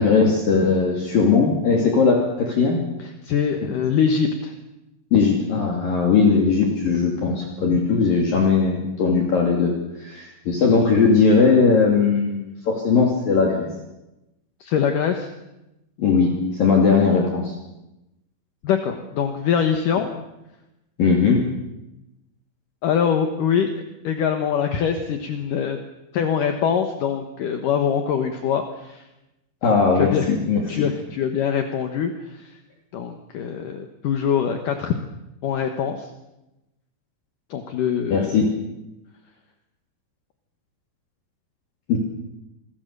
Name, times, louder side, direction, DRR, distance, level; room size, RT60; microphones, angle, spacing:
voice 1, 0.0-2.8 5.1-9.7 10.0-13.7 16.0-17.5 21.0-21.4 29.6-30.8 38.1-38.5 41.9-42.0, left 5 dB, 50° left, 0 dB, 4.2 m, -19 dB
voice 2, 3.0-4.5 14.6-15.3 18.6-20.1 22.8-23.7 24.0-25.8 26.1-29.0 30.0-30.3 30.7-32.6 32.9-35.1 35.4-36.1 37.5-38.4, left 7 dB, 65° left, 5 dB, 2.1 m, -23 dB
27.5 x 21.0 x 6.8 m, 0.94 s
omnidirectional pair, 5.6 m